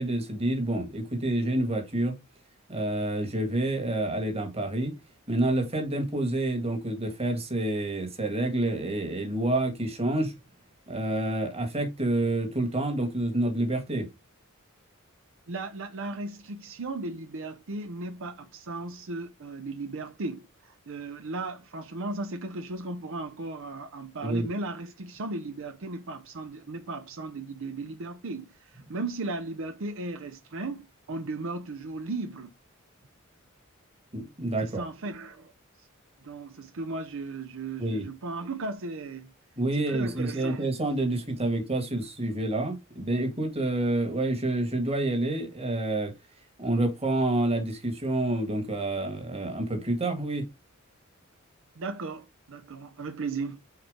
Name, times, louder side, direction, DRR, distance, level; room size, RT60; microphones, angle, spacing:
voice 1, 0.0-2.1 2.7-4.9 5.3-10.3 10.9-14.1 24.2-24.5 34.1-34.8 37.8-38.1 39.6-46.1 46.6-50.5, right 1 dB, 30° right, 1.7 m, -28 dB
voice 2, 15.5-32.5 34.6-35.5 36.2-39.3 39.7-40.7 51.8-53.6, right 3 dB, 65° right, 0.7 m, -36 dB
4.8 x 4.3 x 5.0 m
head